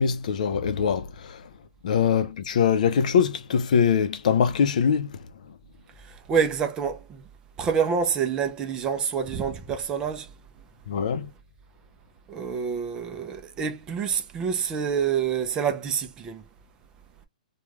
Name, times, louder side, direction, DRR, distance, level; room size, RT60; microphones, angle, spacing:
voice 1, 0.0-1.4 1.8-5.2 10.9-11.3, left 7 dB, 65° left, 0.6 m, -23 dB
voice 2, 6.3-7.0 7.6-10.3 12.3-16.4, right 7 dB, 15° right, 0.5 m, -27 dB
3.1 x 2.3 x 2.4 m
hypercardioid pair, 155°, 4 cm